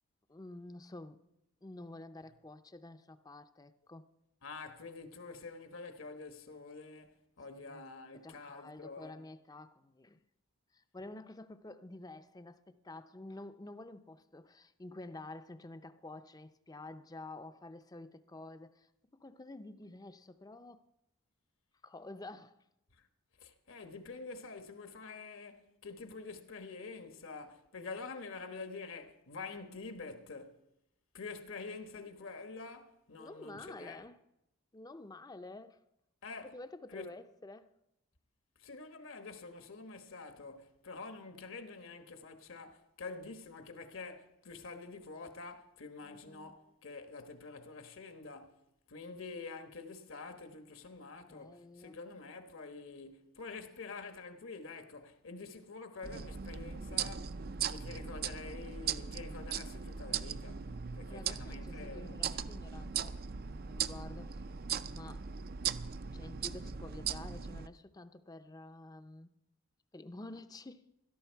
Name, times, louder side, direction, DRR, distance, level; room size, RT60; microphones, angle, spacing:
voice 1, 0.3-1.2 1.6-4.1 7.5-7.9 8.1-10.2 10.7-20.8 21.8-22.6 33.2-34.2 34.7-35.8 36.4-37.7 46.0-46.5 51.3-52.0 61.1-64.4 64.9-65.3 66.1-69.3 69.9-70.9, left 2 dB, 20° left, 0.5 m, -50 dB
voice 2, 4.4-9.2 22.9-23.1 23.4-30.6 31.1-34.0 36.2-36.5 36.9-37.1 38.6-48.6 48.9-57.3 57.7-62.4, left 4 dB, 70° left, 1.2 m, -47 dB
sound 1, 56.0-67.7, right 7 dB, 45° right, 0.5 m, -39 dB
17.0 x 13.0 x 4.6 m
head